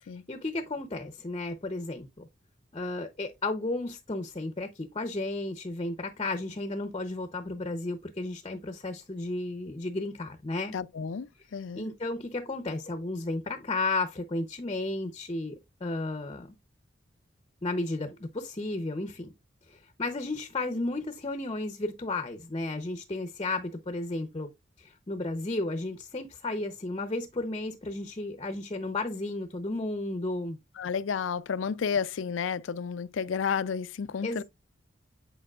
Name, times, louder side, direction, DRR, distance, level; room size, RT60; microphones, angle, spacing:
voice 1, 0.3-2.1 2.7-10.7 11.8-16.5 17.6-19.3 19.7-24.5 24.8-30.6 34.2-34.4, left 2 dB, 30° left, 0.7 m, -33 dB
voice 2, 10.7-11.9 30.8-34.4, left 6 dB, 80° left, 0.4 m, -31 dB
8.9 x 4.6 x 2.3 m
head